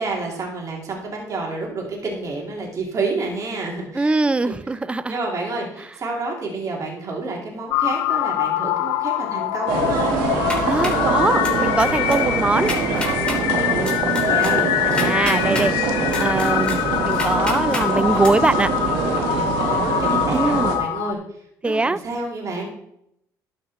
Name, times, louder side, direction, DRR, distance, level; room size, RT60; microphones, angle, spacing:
voice 1, 0.0-4.5 5.1-10.2 13.2-14.7 19.5-21.2 21.6-22.7, right 3 dB, 45° right, -1 dB, 3.0 m, -29 dB
voice 2, 4.0-5.2 10.6-12.7 14.9-15.7 16.1-18.7 20.3-20.7 21.6-22.0, right 3 dB, 15° right, 17 dB, 0.4 m, -22 dB
sound 1, 7.7-21.1, left 13 dB, 80° left, 0.5 m, -24 dB
sound 2, 9.7-20.8, right 4 dB, 90° right, 1.5 m, -24 dB
sound 3, 10.2-11.0 11.4-11.8 12.1-12.2 12.5-13.4 13.8-15.7 16.1-17.8 18.2-18.3, left 2 dB, 15° left, 3.4 m, -29 dB
12.0 x 5.1 x 4.3 m, 0.75 s
supercardioid pair, 85°, 8 cm